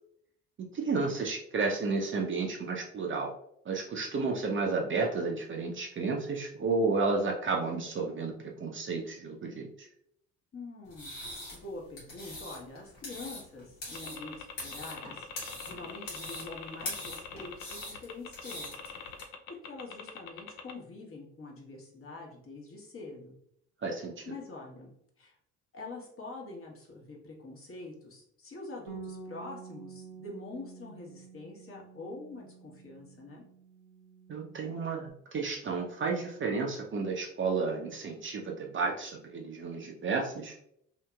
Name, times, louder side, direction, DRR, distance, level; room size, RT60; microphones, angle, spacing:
voice 1, 0.7-3.3 3.6-9.9 23.8-24.2 34.3-40.6, right 4 dB, 35° right, 1 dB, 0.6 m, -32 dB
voice 2, 10.5-15.3 15.6-18.9 19.6-23.3 24.3-24.9 25.2-25.3 25.7-33.4, left 3 dB, 35° left, -1 dB, 1.1 m, -45 dB
sound 1, 10.9-19.2, left 1 dB, 80° left, 1.2 m, -43 dB
sound 2, 13.9-20.7, left 7 dB, 60° left, 0.5 m, -44 dB
Bass guitar, 28.9-35.1, right 5 dB, 65° right, 0.8 m, -49 dB
2.8 x 2.8 x 2.3 m, 0.70 s
hypercardioid pair, 50°, 36 cm